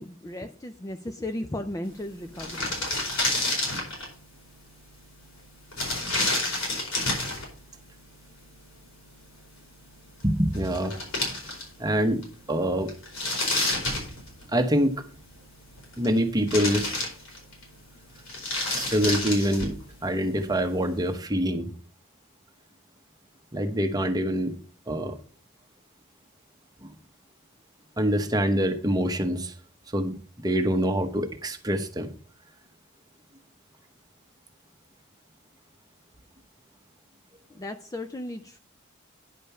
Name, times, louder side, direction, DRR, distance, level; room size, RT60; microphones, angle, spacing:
voice 1, 0.0-2.7 37.5-38.6, left 1 dB, 15° left, 0.4 m, -35 dB
sound 1, 2.0-2.1 2.2-4.1 5.7-7.5 10.2-10.3 10.5-11.9 12.2-12.3 12.9-14.7 15.6-16.2 16.5-17.6 18.2-19.8, left 2 dB, 80° left, 4.8 m, -29 dB
voice 2, 10.2-11.0 11.8-12.9 14.5-15.0 16.0-16.9 18.7-21.7 23.5-24.6 24.9-25.2 26.8-26.9 28.0-29.5 29.9-32.1, equal, 20° right, 0.9 m, -25 dB
10.0 x 5.2 x 5.6 m
head